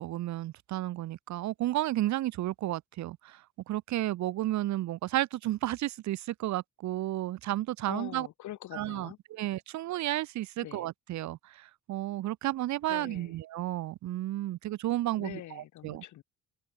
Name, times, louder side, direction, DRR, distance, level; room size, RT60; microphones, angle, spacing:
voice 1, 0.0-8.3 8.7-16.0, right 15 dB, 70° right, 0.7 m, -32 dB
voice 2, 7.9-9.2 10.6-10.9 12.9-13.4 15.1-16.2, left 14 dB, 75° left, 1.2 m, -44 dB
cardioid pair, 90°, 30 cm